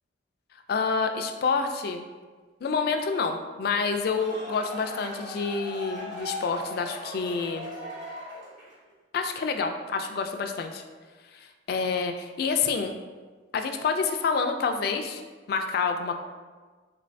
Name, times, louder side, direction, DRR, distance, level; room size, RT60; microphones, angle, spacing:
voice 1, 0.7-2.1 2.6-7.7 9.1-10.8 11.3-12.9 13.5-15.2 15.5-16.2, left 5 dB, 55° left, 6 dB, 0.3 m, -28 dB
sound 1, 3.8-8.9, left 1 dB, 40° right, 1.1 m, -39 dB
3.8 x 2.5 x 3.1 m, 1.4 s
head